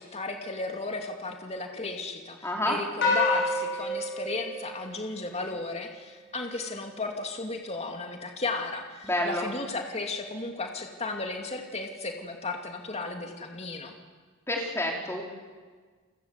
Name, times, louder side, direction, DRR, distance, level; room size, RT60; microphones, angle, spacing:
voice 1, 0.0-13.9, left 3 dB, 30° left, 3 dB, 2.7 m, -35 dB
voice 2, 2.4-2.8 9.0-9.5 14.5-15.2, left 1 dB, 15° left, 0 dB, 4.5 m, -28 dB
sound 1, 3.0-5.5, left 2 dB, 60° left, 6.9 m, -29 dB
30.0 x 24.0 x 8.3 m, 1.5 s
head